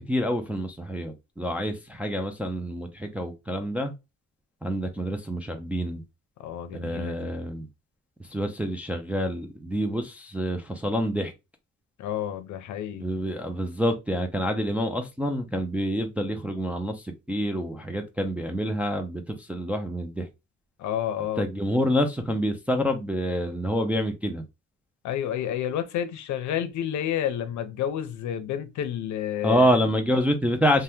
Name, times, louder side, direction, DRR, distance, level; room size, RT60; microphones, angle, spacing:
voice 1, 0.1-3.9 4.6-6.0 6.7-7.7 8.3-11.3 13.0-20.3 21.4-24.4 29.4-30.8, equal, 5° right, 0.3 m, -27 dB
voice 2, 6.4-7.3 12.0-13.1 20.8-21.4 25.0-29.8, left 10 dB, 70° left, 0.6 m, -30 dB
2.8 x 2.2 x 3.4 m
cardioid pair, 155°, 30 cm